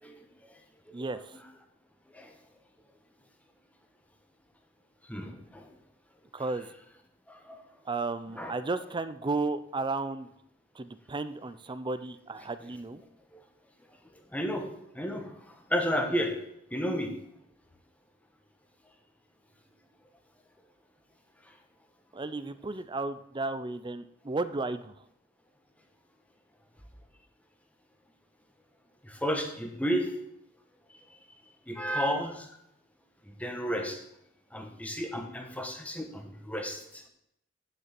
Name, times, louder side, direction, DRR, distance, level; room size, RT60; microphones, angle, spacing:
voice 1, 0.9-1.3 6.3-6.7 7.9-10.3 10.8-13.0 22.1-24.9, right 3 dB, 25° right, 13 dB, 0.5 m, -33 dB
voice 2, 5.1-5.7 7.3-7.6 8.4-8.5 13.3-13.4 14.3-14.6 14.9-15.3 15.7-16.3 16.7-17.1 29.0-30.1 31.7-32.5 33.3-34.0 34.5-37.0, equal, 5° left, 4 dB, 1.3 m, -32 dB
9.4 x 6.6 x 5.9 m, 0.76 s
head